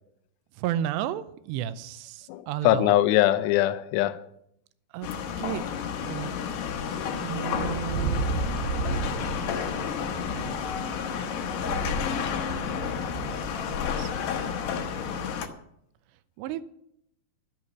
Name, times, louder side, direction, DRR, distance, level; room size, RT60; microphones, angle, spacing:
voice 1, 0.6-2.9 4.9-5.1 5.4-5.7 6.0-6.3 6.9-8.2 10.2-10.7 13.6-14.2 14.8-14.9 16.4-16.6, right 10 dB, 90° right, 2.8 m, -33 dB
voice 2, 2.3-4.2, left 14 dB, 85° left, 2.8 m, -22 dB
sound 1, 5.0-15.5, left 7 dB, 70° left, 2.2 m, -31 dB
sound 2, 7.5-15.4, right 5 dB, 70° right, 2.7 m, -34 dB
11.5 x 9.1 x 6.8 m
omnidirectional pair, 4.9 m